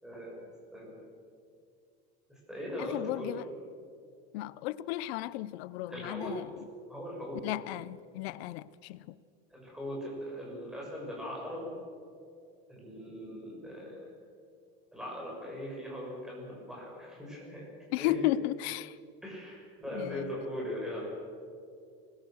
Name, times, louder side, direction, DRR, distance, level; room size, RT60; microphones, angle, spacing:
voice 1, 0.0-1.0 2.3-3.4 5.9-6.3 6.9-7.4 9.5-11.7 12.7-14.1 14.9-17.7 18.0-18.2 19.2-21.1, equal, ahead, -3 dB, 6.5 m, -40 dB
voice 2, 2.8-3.4 4.3-6.5 7.4-9.1 17.9-19.0 19.9-20.3, left 14 dB, 90° left, 18 dB, 0.7 m, -34 dB
24.0 x 21.0 x 6.6 m, 2.3 s
cardioid pair, 165°, 31 cm